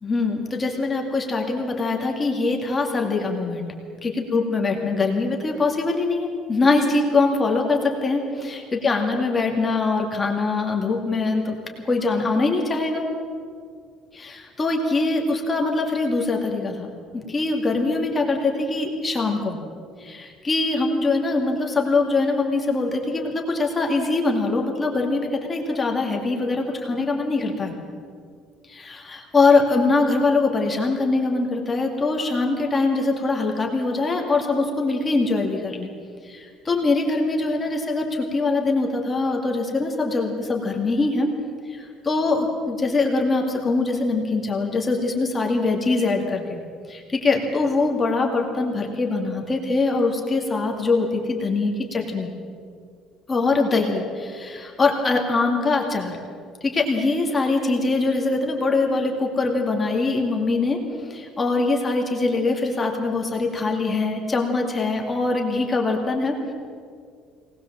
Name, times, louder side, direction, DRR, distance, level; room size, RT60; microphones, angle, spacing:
voice 1, 0.0-3.7 4.0-11.6 11.9-13.1 14.1-19.6 20.0-27.7 28.7-35.9 36.2-41.3 41.7-46.6 46.9-52.3 53.3-56.2 56.6-66.5, left 3 dB, 15° left, 1 dB, 2.3 m, -23 dB
23.5 x 19.0 x 7.4 m, 2.2 s
cardioid pair, 180°, 0 cm